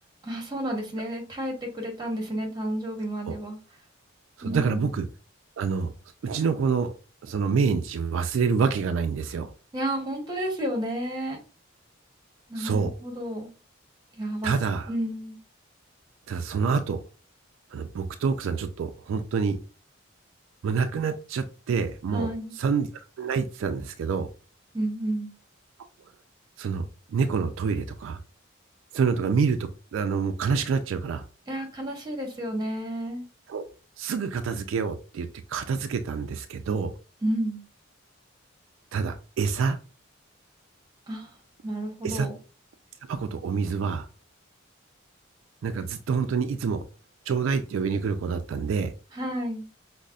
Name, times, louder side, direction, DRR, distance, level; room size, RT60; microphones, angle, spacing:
voice 1, 0.2-3.6 4.4-4.8 9.7-11.4 12.5-13.5 14.1-14.5 14.9-15.4 22.1-22.5 24.7-25.3 31.5-33.2 37.2-37.6 41.1-41.3 41.6-42.3 49.1-49.6, right 1 dB, 20° right, 1 dB, 0.9 m, -31 dB
voice 2, 4.4-5.1 5.6-5.9 6.2-6.9 7.2-9.5 12.6-12.9 14.4-14.9 16.3-17.0 17.7-19.6 20.6-22.3 22.6-22.9 23.2-24.3 26.6-28.2 28.9-29.6 29.9-31.3 33.5-33.6 34.0-36.9 38.9-39.8 42.0-42.3 43.1-44.1 45.6-46.8 47.3-48.9, right 5 dB, 75° right, 8 dB, 0.3 m, -27 dB
5.2 x 2.0 x 2.3 m, 0.35 s
head